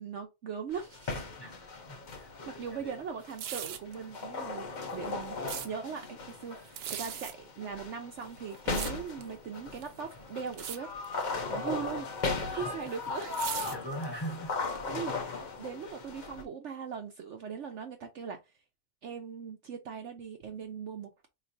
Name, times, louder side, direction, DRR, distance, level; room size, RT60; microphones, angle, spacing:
voice 1, 0.0-1.3 2.5-11.1 11.5-12.1 12.5-13.6 14.9-18.4 19.0-21.1, right 6 dB, 60° right, 0.8 m, -40 dB
sound 1, 0.7-16.4, left 3 dB, 45° left, 0.6 m, -38 dB
voice 2, 1.4-2.9 11.3-11.7 12.5-12.7 13.7-14.6, right 1 dB, 20° left, 1.1 m, -42 dB
sound 2, 3.2-3.9 4.8-5.7 6.6-7.3 8.2-9.3 9.8-10.1 10.5-10.8 11.0-11.3 12.2-14.3 14.8-14.9, right 9 dB, 90° right, 1.2 m, -39 dB
4.6 x 3.2 x 2.6 m
omnidirectional pair, 1.6 m